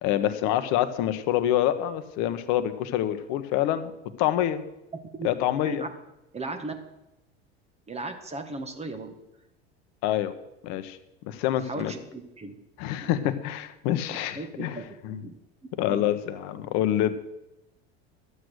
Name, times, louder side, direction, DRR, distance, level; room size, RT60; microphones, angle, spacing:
voice 1, 0.0-3.9 4.2-4.6 5.2-5.8 10.0-10.3 10.6-11.0 11.2-11.9 12.8-14.8 15.0-15.2 15.8-17.2, left 12 dB, 55° left, 11 dB, 1.2 m, -26 dB
voice 2, 6.3-6.7 7.9-9.1 11.6-12.6 13.0-13.1 14.4-14.8 15.1-15.3 15.9-16.1, right 3 dB, 20° right, 7 dB, 1.8 m, -36 dB
12.5 x 8.3 x 6.5 m, 0.92 s
hypercardioid pair, 80°, 32 cm